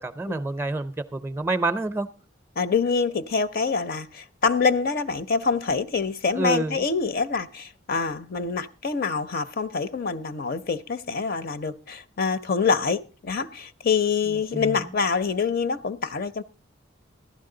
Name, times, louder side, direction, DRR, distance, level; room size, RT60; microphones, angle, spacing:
voice 1, 0.0-2.1 6.3-6.8 14.5-14.7, right 2 dB, 10° right, 0.5 m, -27 dB
voice 2, 2.6-16.4, left 5 dB, 50° left, 0.6 m, -26 dB
15.0 x 12.0 x 3.8 m
head